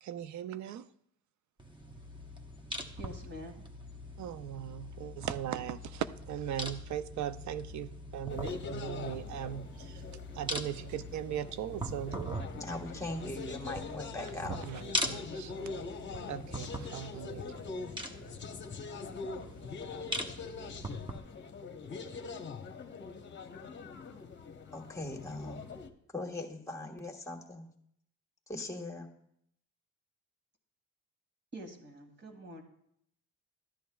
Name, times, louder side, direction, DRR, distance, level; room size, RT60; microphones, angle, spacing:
voice 1, 0.0-0.9 4.2-10.0 10.3-12.4 14.4-15.8 16.3-17.4, right 11 dB, 70° right, 0.5 m, -39 dB
sound 1, 1.6-21.2, equal, 15° right, 0.9 m, -42 dB
voice 2, 3.0-3.6 31.5-32.6, right 1 dB, 40° right, 2.0 m, -46 dB
sound 2, 8.3-25.9, left 4 dB, 40° left, 0.9 m, -43 dB
voice 3, 12.5-14.6 24.7-25.6 26.1-27.7 28.5-29.1, left 2 dB, 10° left, 1.5 m, -40 dB
13.0 x 10.0 x 2.3 m
cardioid pair, 90°, 30 cm